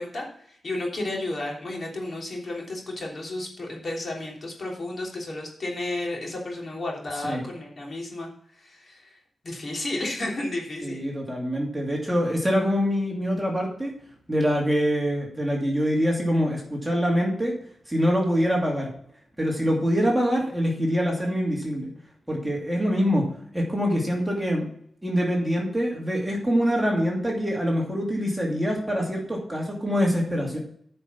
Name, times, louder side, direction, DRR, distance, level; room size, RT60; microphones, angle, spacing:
voice 1, 0.0-8.3 8.6-9.2 9.4-11.0, left 2 dB, 45° left, -2 dB, 3.3 m, -32 dB
voice 2, 10.8-13.9 14.3-17.5 17.9-18.9 19.4-21.9 22.3-23.2 23.5-24.7 25.0-30.6, equal, 10° right, -2 dB, 2.6 m, -24 dB
9.7 x 5.4 x 5.8 m, 0.63 s
wide cardioid pair, 110°, 0 cm